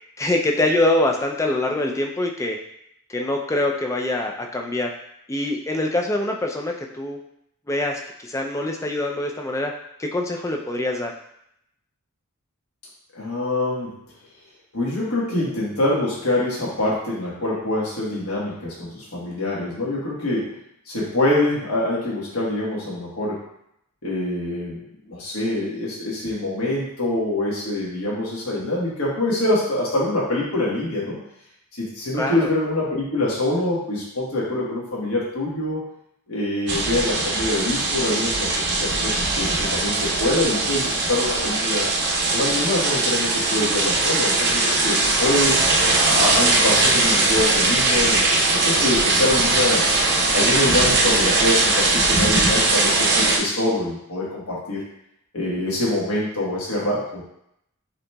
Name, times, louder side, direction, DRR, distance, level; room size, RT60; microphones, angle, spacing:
voice 1, 0.2-2.6 3.1-4.9 5.3-7.2 7.7-9.7 10.0-11.1 32.2-32.5, left 1 dB, 15° left, 2 dB, 0.4 m, -24 dB
voice 2, 13.1-13.9 14.7-20.5 20.9-23.4 24.0-31.2 31.8-35.8 36.3-41.9 42.3-45.5 46.0-49.8 50.3-54.8 55.3-57.2, left 1 dB, 70° left, -5 dB, 1.4 m, -25 dB
sound 1, 36.7-53.4, right 2 dB, 50° right, 0.7 m, -20 dB
6.5 x 2.9 x 2.3 m, 0.76 s
head